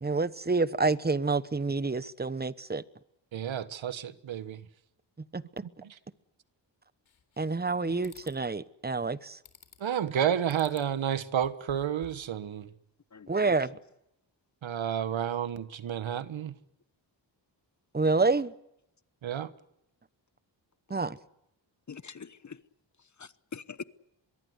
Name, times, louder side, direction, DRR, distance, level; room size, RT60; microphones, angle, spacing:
voice 1, 0.0-2.8 5.3-5.4 7.4-9.4 13.3-13.7 17.9-18.5 20.9-21.2, right 3 dB, 20° right, 1.1 m, -28 dB
voice 2, 3.3-4.6 5.8-6.0 9.8-12.7 14.6-16.5 19.2-19.5, right 9 dB, 85° right, 1.4 m, -31 dB
sound 1, 7.1-7.7 8.0-8.4 9.4-10.0 10.5-10.9 11.3-12.3, left 7 dB, 85° left, 3.8 m, -54 dB
voice 3, 13.1-13.6 21.9-22.6 23.0-23.8, left 5 dB, 40° left, 1.1 m, -44 dB
24.5 x 22.0 x 8.1 m
cardioid pair, 75°, 45 cm